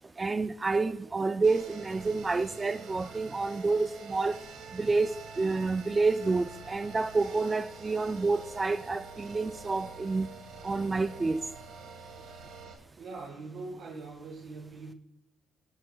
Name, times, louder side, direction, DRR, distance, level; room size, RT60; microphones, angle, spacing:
voice 1, 0.2-4.4 4.7-10.3 10.6-11.4, right 3 dB, 25° right, 0.4 m, -29 dB
sound 1, 1.4-12.7, right 4 dB, 85° right, 2.0 m, -46 dB
voice 2, 13.0-14.9, right 3 dB, 65° right, 1.8 m, -42 dB
16.5 x 8.8 x 2.3 m
cardioid pair, 90°, 0 cm